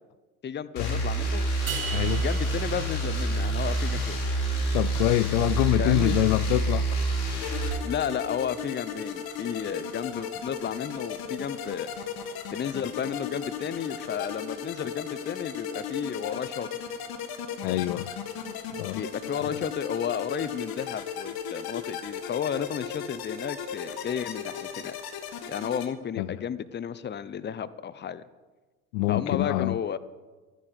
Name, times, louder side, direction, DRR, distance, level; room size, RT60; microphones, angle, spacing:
voice 1, 0.4-1.5 2.1-4.2 5.8-6.2 7.8-11.9 12.5-16.8 19.0-25.0 25.5-28.2 29.1-30.0, left 8 dB, 25° left, 0.8 m, -32 dB
sound 1, 0.8-7.7, right 2 dB, 90° left, 4.7 m, -27 dB
sound 2, 1.7-4.0, right 6 dB, 25° right, 3.7 m, -38 dB
voice 2, 1.9-2.2 4.7-6.9 17.6-18.1 18.8-19.0 19.5-19.6 26.2-26.4 28.9-29.8, left 18 dB, 70° left, 0.5 m, -25 dB
sound 3, 7.4-25.9, left 7 dB, 55° left, 1.7 m, -36 dB
13.0 x 10.0 x 6.8 m
hypercardioid pair, 75°, 43 cm